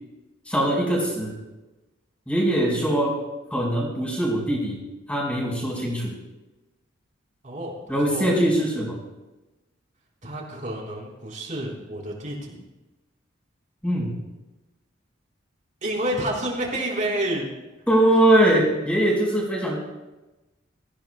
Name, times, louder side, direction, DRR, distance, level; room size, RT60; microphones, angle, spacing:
voice 1, 0.5-1.4 2.3-3.2 3.5-4.8 5.1-6.1 7.9-8.9 13.8-14.2 17.9-19.8, right 1 dB, 5° left, -2 dB, 4.7 m, -22 dB
voice 2, 7.4-8.3 10.2-12.6 15.8-17.5, right 1 dB, 40° right, -2 dB, 3.8 m, -29 dB
24.5 x 15.5 x 2.2 m, 1.1 s
head